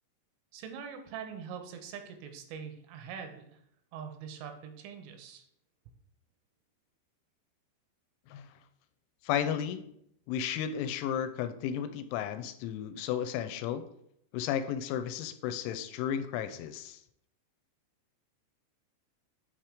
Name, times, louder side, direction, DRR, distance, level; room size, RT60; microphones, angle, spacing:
voice 1, 0.5-3.6 3.9-5.4, right 7 dB, 85° right, 6 dB, 3.3 m, -43 dB
voice 2, 9.2-9.8 10.3-13.8 14.3-17.0, left 9 dB, 85° left, 10 dB, 2.9 m, -33 dB
7.4 x 2.9 x 4.9 m, 0.72 s
omnidirectional pair, 5.5 m